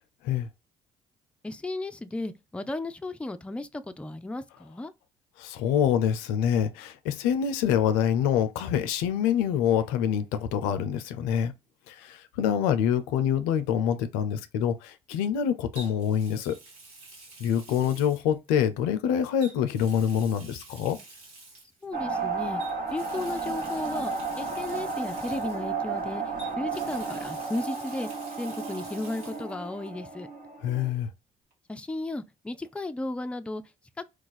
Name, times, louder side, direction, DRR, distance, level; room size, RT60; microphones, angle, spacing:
voice 1, 1.4-4.9 21.8-22.6 22.9-28.1 28.4-30.3 31.7-33.6, left 2 dB, 5° left, 0.4 m, -34 dB
voice 2, 5.4-11.5 11.9-16.6 17.4-21.0 30.6-31.1, left 9 dB, 80° left, 0.4 m, -26 dB
Water tap faucet, 12.8-13.0 15.7-18.8 19.4-21.9 22.6-26.0 26.4-29.5 29.8-29.9 31.5-31.6, right 2 dB, 80° right, 1.1 m, -49 dB
sound 1, 21.9-30.9, right 4 dB, 55° right, 1.2 m, -33 dB
2.4 x 2.3 x 3.9 m
hypercardioid pair, 55°, 17 cm